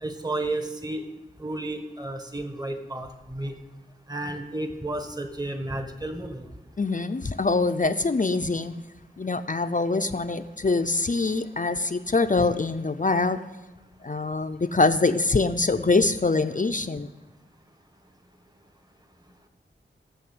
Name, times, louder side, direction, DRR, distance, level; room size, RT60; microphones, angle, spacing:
voice 1, 0.0-1.1 1.4-3.5 4.1-6.4, right 2 dB, 20° right, 6 dB, 1.5 m, -32 dB
voice 2, 6.8-8.7 9.2-13.4 14.0-17.1, left 3 dB, 40° left, 8 dB, 0.6 m, -24 dB
16.5 x 6.4 x 7.9 m, 1.1 s
wide cardioid pair, 55°, 20 cm